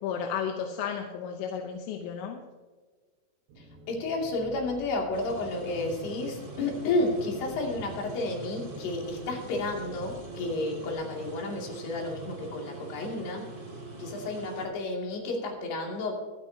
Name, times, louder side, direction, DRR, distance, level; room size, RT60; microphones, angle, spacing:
voice 1, 0.0-2.4, left 7 dB, 75° left, 3 dB, 2.9 m, -33 dB
sound 1, 3.5-10.9, right 1 dB, 70° right, 3.4 m, -49 dB
voice 2, 3.6-13.5 14.0-16.1, left 2 dB, 60° left, -1 dB, 4.4 m, -31 dB
sound 2, 5.1-14.7, right 3 dB, 50° right, 1.1 m, -43 dB
24.5 x 9.6 x 2.8 m, 1.4 s
omnidirectional pair, 5.8 m